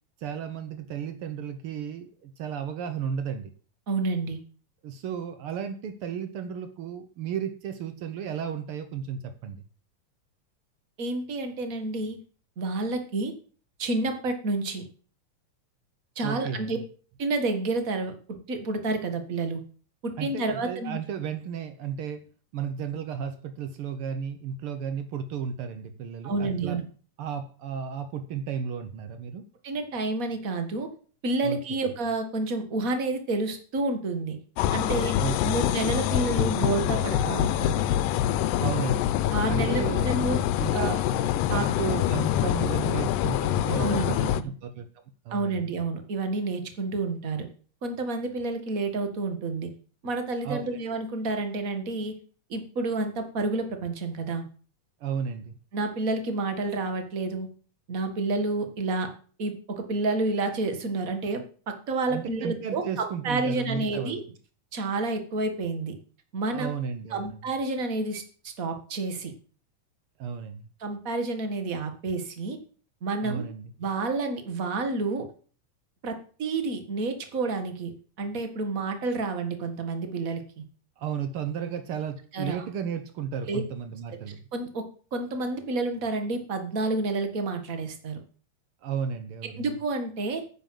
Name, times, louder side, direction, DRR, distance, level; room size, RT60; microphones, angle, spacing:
voice 1, 0.2-3.5 4.8-9.6 16.2-16.8 20.2-22.2 22.5-26.8 27.2-29.5 31.4-31.6 35.2-35.7 38.6-39.1 39.5-40.1 40.6-41.0 41.5-44.2 44.6-45.6 50.4-50.8 55.0-55.5 62.1-64.2 66.5-67.4 70.2-70.7 73.2-73.7 81.0-84.4 88.8-89.7, right 7 dB, 90° right, 10 dB, 1.2 m, -34 dB
voice 2, 3.9-4.4 11.0-12.2 12.6-13.3 13.8-14.8 16.1-16.8 17.2-18.1 18.5-19.6 20.0-21.0 26.2-26.8 29.6-30.9 31.2-34.4 34.7-35.1 35.4-37.8 39.3-40.4 40.7-41.0 41.5-41.7 43.8-44.5 45.3-47.5 47.8-49.7 50.0-52.1 52.5-54.4 55.7-57.5 57.9-59.1 59.4-64.2 64.7-66.0 66.3-66.7 67.1-69.3 70.8-72.6 73.0-73.4 73.8-75.2 76.0-77.9 78.2-80.6 82.3-82.7 83.5-83.6 84.5-84.8 85.1-88.2 89.6-90.4, right 3 dB, 35° right, 6 dB, 1.4 m, -29 dB
sound 1, 34.6-44.4, left 11 dB, 90° left, 2.3 m, -25 dB
9.6 x 7.8 x 7.6 m, 0.42 s
omnidirectional pair, 3.7 m